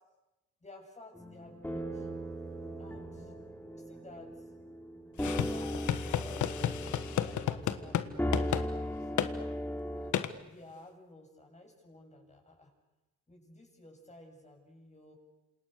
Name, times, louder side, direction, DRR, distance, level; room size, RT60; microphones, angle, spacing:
voice 1, 0.6-2.1 2.8-3.3 3.6-4.5 5.3-6.7 7.2-9.1 10.4-12.7 13.3-15.2, left 2 dB, 25° left, 2 dB, 7.7 m, -54 dB
sound 1, 1.1-10.1, equal, 5° left, 3.3 m, -38 dB
sound 2, 5.2-8.1 8.3-8.7 9.2-9.3 10.1-10.3, left 10 dB, 75° left, 1.6 m, -32 dB
28.0 x 27.5 x 6.8 m, 1.0 s
cardioid pair, 90°, 30 cm